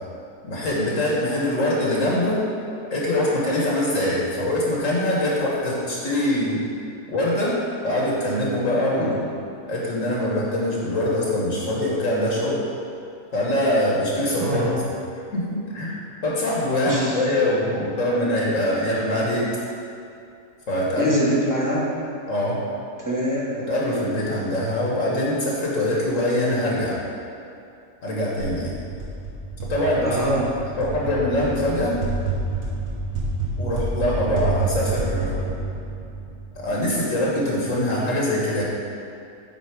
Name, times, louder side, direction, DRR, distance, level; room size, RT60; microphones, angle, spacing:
voice 1, 0.4-2.4 2.9-6.6 7.1-7.6 7.8-9.1 9.7-12.6 13.3-14.6 15.3-19.5 20.7-21.1 22.2-22.6 23.6-27.0 28.0-28.7 29.6-30.2 30.8-32.0 33.6-35.5 36.6-38.6, left 1 dB, 55° left, -4 dB, 1.4 m, -23 dB
voice 2, 14.4-14.8 16.8-17.2 20.9-21.9 23.0-23.6 30.0-30.5, equal, 15° right, -6 dB, 1.0 m, -24 dB
sound 1, 28.4-37.1, right 3 dB, 65° right, 1.7 m, -29 dB
8.4 x 4.0 x 4.8 m, 2.5 s
omnidirectional pair, 1.7 m